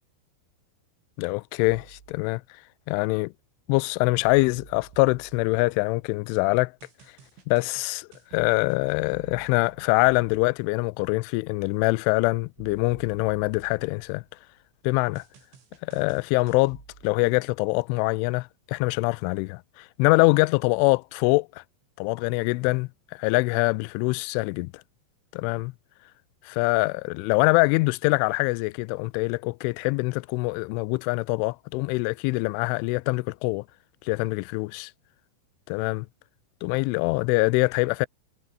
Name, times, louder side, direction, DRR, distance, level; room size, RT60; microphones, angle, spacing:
voice 1, 1.2-2.4 2.9-3.3 3.7-6.7 7.5-14.2 14.8-15.2 15.8-21.6 22.0-24.7 25.3-25.7 26.5-33.6 34.1-34.9 35.7-36.1 36.6-38.1, left 26 dB, 85° left, 3.0 m, -24 dB
sound 1, 1.6-2.2 4.2-6.1 6.8-10.5 12.6-14.4 15.2-17.4, right 7 dB, 75° right, 7.1 m, -52 dB
omnidirectional pair, 5.5 m